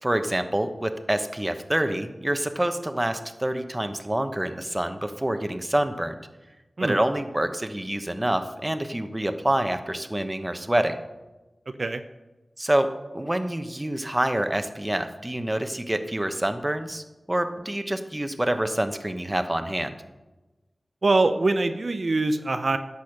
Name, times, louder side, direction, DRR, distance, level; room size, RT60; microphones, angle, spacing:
voice 1, 0.0-6.2 6.8-11.0 12.6-19.9, right 1 dB, 20° right, 8 dB, 0.9 m, -27 dB
voice 2, 21.0-22.8, right 2 dB, 60° right, 8 dB, 0.7 m, -23 dB
10.5 x 7.0 x 6.4 m, 1.1 s
wide cardioid pair, 65°, 0 cm